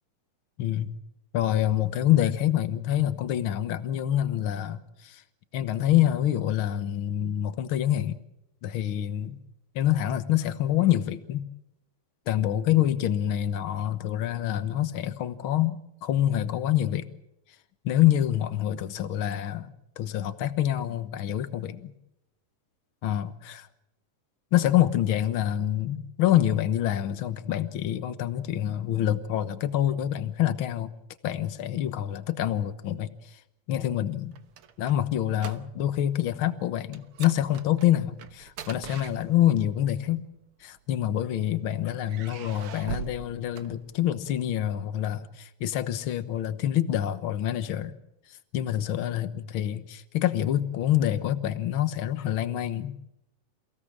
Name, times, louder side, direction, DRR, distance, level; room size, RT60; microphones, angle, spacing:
voice 1, 0.6-0.9 1.3-5.2 5.5-8.2 8.6-9.4 9.7-11.4 12.3-17.1 17.8-21.9 23.0-23.7 24.5-30.9 31.2-33.1 33.7-34.3 34.8-40.2 40.6-47.9 48.5-52.9, left 12 dB, 65° left, 12 dB, 1.3 m, -26 dB
sound 1, 34.1-36.0 36.3-36.5 36.9-39.7 40.6-41.4 42.0-44.3, right 9 dB, 65° right, 1.4 m, -42 dB
29.0 x 17.5 x 7.4 m, 0.82 s
omnidirectional pair, 3.9 m